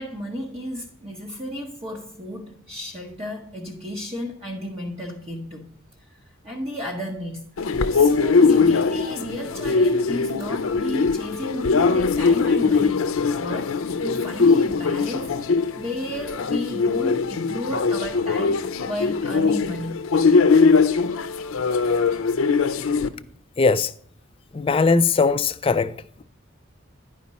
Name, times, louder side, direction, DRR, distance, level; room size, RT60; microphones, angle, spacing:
voice 1, 0.0-5.7 6.1-6.2 6.4-7.5 7.9-13.1 13.4-13.7 14.0-15.4 15.8-20.1, equal, 30° right, 0.9 m, -33 dB
sound 1, 7.6-23.1, left 4 dB, 90° left, 0.5 m, -21 dB
voice 2, 23.6-23.9 24.5-25.9, left 4 dB, 25° left, 0.3 m, -19 dB
10.5 x 5.1 x 4.1 m
head